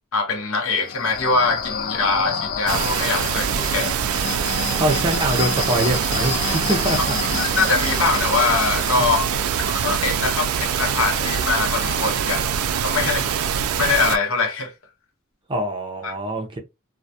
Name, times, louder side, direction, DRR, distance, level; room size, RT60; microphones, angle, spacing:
voice 1, 0.1-3.9 7.4-9.3 9.6-12.5 12.8-13.4 13.8-14.7 16.0-16.1, left 4 dB, 65° left, 0.7 m, -23 dB
sound 1, 0.7-14.1, left 7 dB, 45° left, 0.3 m, -31 dB
sound 2, 2.7-14.2, right 8 dB, 85° right, 0.3 m, -24 dB
voice 2, 4.8-7.1 15.5-16.6, right 1 dB, 25° right, 0.5 m, -23 dB
2.2 x 2.1 x 2.7 m
head